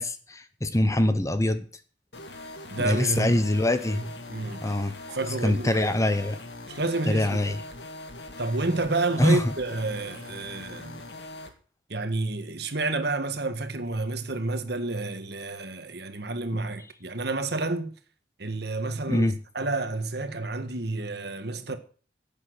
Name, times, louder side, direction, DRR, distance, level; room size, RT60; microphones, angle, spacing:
voice 1, 0.0-1.6 2.8-4.0 4.6-5.2 5.4-6.4 7.1-7.6 9.2-9.5 16.5-16.6 19.1-19.4, left 1 dB, 15° left, 0.9 m, -24 dB
sound 1, 2.1-11.5, left 2 dB, 70° left, 2.2 m, -42 dB
voice 2, 2.7-3.4 3.9-4.7 5.1-5.9 6.7-7.6 8.4-11.0 11.9-18.0 18.4-21.8, right 2 dB, 60° right, 1.6 m, -30 dB
12.0 x 8.6 x 8.0 m
head